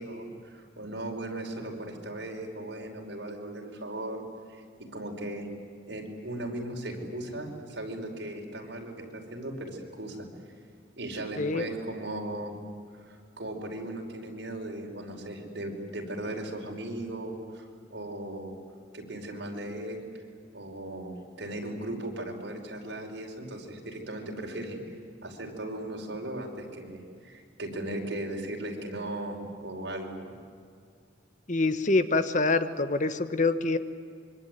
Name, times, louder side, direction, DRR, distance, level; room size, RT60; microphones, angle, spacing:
voice 1, 0.0-5.5 5.9-10.3 11.0-12.5 12.9-18.5 18.9-20.1 20.5-24.8 25.2-30.3, right 1 dB, 75° right, 1 dB, 5.2 m, -37 dB
voice 2, 31.5-33.8, left 3 dB, 45° left, 11 dB, 1.2 m, -25 dB
26.0 x 24.5 x 9.5 m, 2.3 s
head